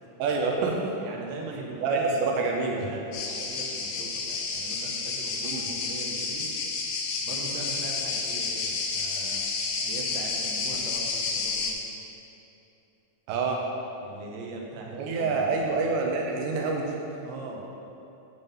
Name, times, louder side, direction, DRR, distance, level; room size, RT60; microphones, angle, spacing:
voice 1, 0.2-0.9 1.8-2.9 5.4-5.7 13.3-13.6 14.9-17.0, right 4 dB, 90° right, 0 dB, 2.2 m, -27 dB
voice 2, 1.0-6.5 7.2-9.4 9.8-11.7 14.0-15.6 17.2-17.6, right 3 dB, 70° right, -1 dB, 1.9 m, -40 dB
sound 1, 3.1-11.7, left 4 dB, 80° left, 2.1 m, -30 dB
9.2 x 3.7 x 5.4 m, 2.8 s
omnidirectional pair, 3.6 m